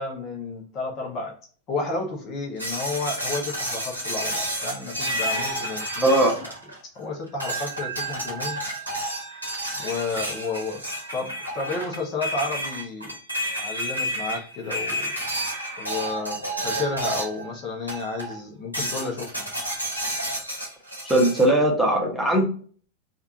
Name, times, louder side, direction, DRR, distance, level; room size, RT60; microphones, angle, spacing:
voice 1, 0.0-1.3 1.7-6.3 6.9-8.6 9.8-10.8 11.1-13.2 13.6-15.1 15.8-19.5, left 3 dB, 35° left, 0 dB, 0.9 m, -31 dB
sound 1, 2.6-7.0 7.4-17.5 17.9-18.4 18.7-21.5, right 1 dB, 90° left, 1.1 m, -30 dB
voice 2, 6.0-6.4 21.0-22.4, right 1 dB, ahead, -2 dB, 1.0 m, -19 dB
3.4 x 2.5 x 2.7 m, 0.43 s
figure-of-eight pair, 90°, 0 cm